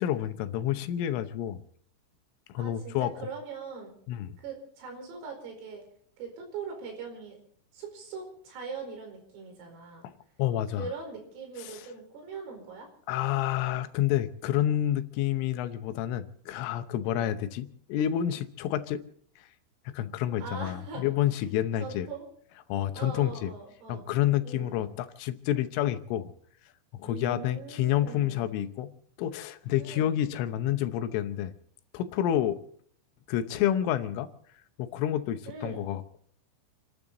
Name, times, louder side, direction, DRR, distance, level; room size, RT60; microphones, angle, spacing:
voice 1, 0.0-1.6 2.5-3.1 4.1-4.4 10.0-10.1 10.4-10.9 11.6-11.8 13.1-19.0 19.9-22.1 22.7-23.5 23.9-26.3 27.0-28.9 29.2-31.5 31.9-32.6 33.3-34.3 34.8-36.2, left 11 dB, 80° left, 3.4 m, -29 dB
voice 2, 2.6-3.9 4.4-5.9 6.2-7.4 7.7-10.1 10.8-12.9 17.0-17.3 20.4-21.1 21.8-22.3 22.9-24.0 24.4-24.9 27.0-28.5 29.8-30.2 35.5-35.9, right 5 dB, 90° right, 7.4 m, -41 dB
29.0 x 12.5 x 4.0 m
omnidirectional pair, 5.8 m